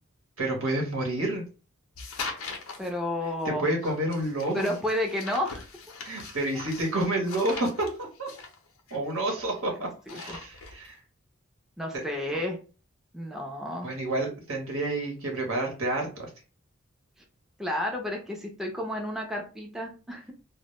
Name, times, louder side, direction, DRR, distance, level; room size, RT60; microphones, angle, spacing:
voice 1, 0.4-1.4 3.4-4.7 6.0-8.3 8.9-11.0 11.9-12.0 13.8-16.3, right 1 dB, 85° right, 0 dB, 0.9 m, -29 dB
sound 1, 2.0-2.9 3.8-9.6 9.9-10.9, left 4 dB, 85° left, 0.5 m, -41 dB
voice 2, 2.8-3.7 4.5-5.6 6.5-6.6 9.8-10.4 11.8-12.6 13.1-13.9 17.6-20.3, left 1 dB, ahead, 0 dB, 0.4 m, -31 dB
2.1 x 2.0 x 2.9 m, 0.35 s
head